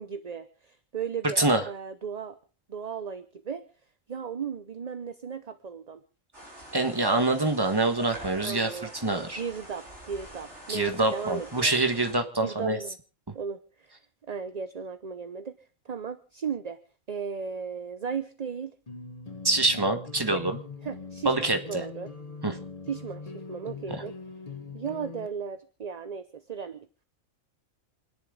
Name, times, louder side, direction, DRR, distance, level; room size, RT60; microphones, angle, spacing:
voice 1, 0.0-2.4 2.7-3.6 4.1-6.0 8.4-11.8 12.4-13.0 13.3-13.9 14.3-15.5 15.8-16.8 17.1-18.7 20.3-20.4 20.8-22.1 22.9-24.1 24.7-27.0, right 6 dB, 35° right, 10 dB, 0.8 m, -36 dB
sound 1, 6.3-12.1, right 1 dB, 60° right, 6.0 m, -46 dB
voice 2, 6.7-8.7 9.0-9.4 10.7-12.8 19.4-20.6 21.2-21.8 22.4-22.6 23.9-24.0, right 2 dB, 20° right, 6 dB, 1.5 m, -25 dB
sound 2, 18.9-25.3, left 4 dB, 30° left, 1.1 m, -41 dB
28.0 x 10.5 x 3.8 m, 0.37 s
omnidirectional pair, 1.4 m